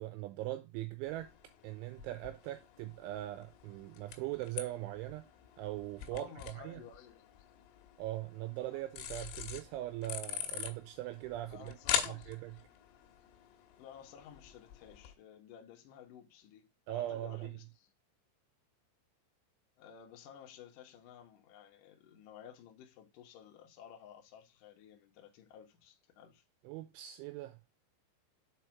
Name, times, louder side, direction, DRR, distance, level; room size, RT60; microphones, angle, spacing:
voice 1, 0.0-1.3 1.6-5.3 5.6-6.8 8.0-11.8 12.0-12.5 16.9-17.5 26.7-27.6, right 15 dB, 80° right, 2.9 m, -41 dB
sound 1, 1.0-15.1, left 9 dB, 80° left, 3.7 m, -43 dB
voice 2, 6.1-7.3 8.7-8.8 11.5-12.3 13.8-17.9 19.8-26.4, left 8 dB, 65° left, 2.2 m, -54 dB
7.0 x 4.8 x 4.5 m
omnidirectional pair, 5.8 m